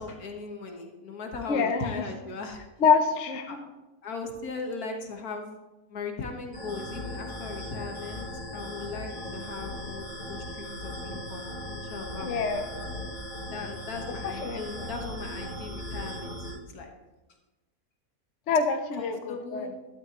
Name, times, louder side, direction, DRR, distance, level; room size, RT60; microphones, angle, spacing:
voice 1, 0.0-2.6 3.5-3.6 4.0-5.6 5.9-12.3 13.5-16.9 19.0-19.7, left 4 dB, 75° left, 3 dB, 1.8 m, -38 dB
voice 2, 1.5-2.0 2.8-3.6 12.2-12.6 14.2-14.9 18.5-19.7, left 5 dB, 60° left, 7 dB, 1.0 m, -26 dB
sound 1, 6.5-16.5, left 1 dB, 35° left, 4.0 m, -38 dB
12.5 x 12.0 x 3.0 m, 1.1 s
omnidirectional pair, 1.6 m